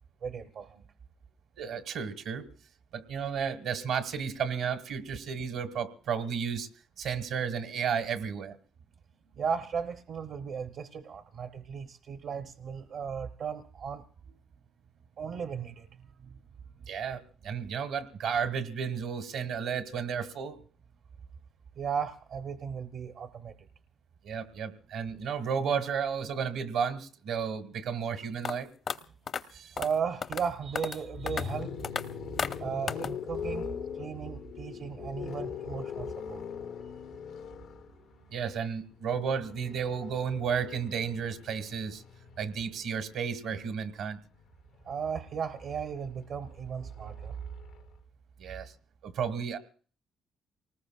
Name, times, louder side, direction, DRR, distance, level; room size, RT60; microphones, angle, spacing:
voice 1, 0.2-0.8 9.3-14.0 15.2-16.4 21.8-23.6 29.8-31.7 32.6-33.7 33.9-36.4 44.9-47.4, right 6 dB, 65° right, 8 dB, 0.7 m, -36 dB
voice 2, 1.6-2.4 2.9-6.7 7.0-8.6 16.9-20.6 24.2-28.7 29.5-29.7 38.3-42.0 42.4-44.2 48.4-48.7 49.0-49.6, right 7 dB, 80° right, 9 dB, 1.3 m, -33 dB
sound 1, 28.4-28.5 28.9-29.0 29.3-29.4 29.8-29.9 30.2-30.5 30.8-31.0 31.3-31.4 31.8-32.0 32.4-32.6 32.9-33.1, left 6 dB, 55° left, 0.7 m, -32 dB
sound 2, 31.0-43.0 44.2-47.8, left 7 dB, 85° left, 0.9 m, -42 dB
29.0 x 19.5 x 2.3 m, 0.42 s
cardioid pair, 90°, 0 cm